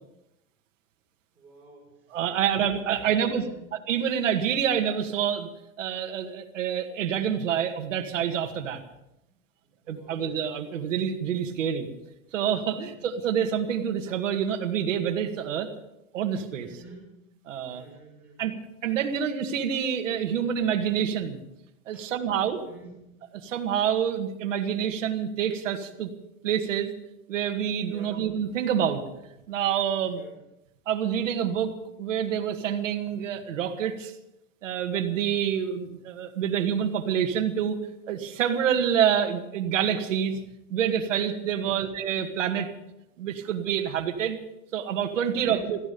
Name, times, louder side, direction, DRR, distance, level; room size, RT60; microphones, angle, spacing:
voice 1, 1.3-2.7 3.0-3.6 9.3-9.4 9.6-10.3 12.7-12.9 16.6-17.1 17.7-18.4 21.9-22.1 22.7-23.0 27.9-28.2 30.1-30.3 41.5-41.9 45.3-45.7, right 2 dB, 5° right, -6 dB, 6.0 m, -49 dB
voice 2, 2.1-3.4 3.9-5.5 5.8-8.8 9.9-11.9 12.3-15.7 16.1-16.7 17.5-17.8 18.4-18.5 18.8-21.4 21.9-22.6 23.4-26.1 26.4-26.9 27.3-29.0 29.5-30.2 30.9-31.7 32.0-34.1 34.6-37.8 38.1-40.4 40.7-42.7 43.2-44.4 44.7-45.8, right 8 dB, 60° right, 5 dB, 2.1 m, -27 dB
17.5 x 14.5 x 5.5 m, 0.88 s
supercardioid pair, 175°, 42 cm